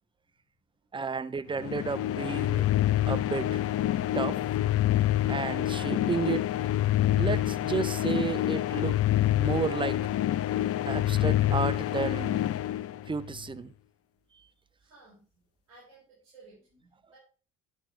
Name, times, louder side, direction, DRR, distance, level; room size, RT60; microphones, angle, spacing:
voice 1, 0.9-2.6 3.1-3.6 4.1-4.4 5.3-6.5 7.2-9.0 9.4-10.0 10.9-12.5 13.1-13.7, right 5 dB, 15° right, 0.5 m, -32 dB
sound 1, 1.6-13.4, left 13 dB, 35° left, 0.5 m, -27 dB
voice 2, 14.8-15.2 15.7-17.2, right 3 dB, 75° right, 4.4 m, -56 dB
9.1 x 8.8 x 3.3 m
figure-of-eight pair, 50°, 40 cm